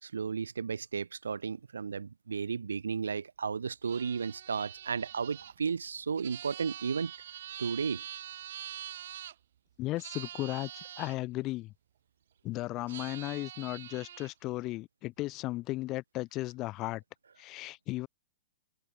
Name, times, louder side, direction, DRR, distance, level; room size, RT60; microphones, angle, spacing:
voice 1, 0.0-7.1 7.6-8.0, right 6 dB, 90° right, 2.8 m, -34 dB
sound 1, 3.8-9.3 10.0-11.2 12.9-14.3, right 11 dB, 65° right, 2.3 m, -45 dB
voice 2, 9.8-11.7 12.4-17.0 17.4-18.1, left 18 dB, 30° left, 2.0 m, -35 dB
hypercardioid pair, 130°, 0 cm